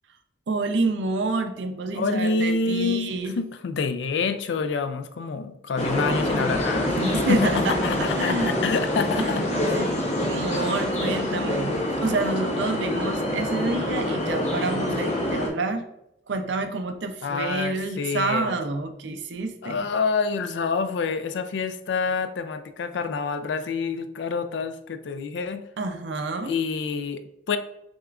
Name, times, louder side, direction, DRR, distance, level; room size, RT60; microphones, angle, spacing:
voice 1, 0.5-3.4 6.9-8.5 9.2-9.3 9.7-15.8 16.3-19.8 25.8-26.5, right 3 dB, 70° right, 7 dB, 0.5 m, -28 dB
voice 2, 1.9-7.1 7.4-9.4 9.7-9.8 17.2-18.6 19.6-25.6 26.4-27.2 27.5-27.6, left 4 dB, 75° left, 9 dB, 0.3 m, -27 dB
sound 1, 5.8-15.5, left 1 dB, 35° left, 0.7 m, -26 dB
6.1 x 2.4 x 2.3 m, 0.82 s
head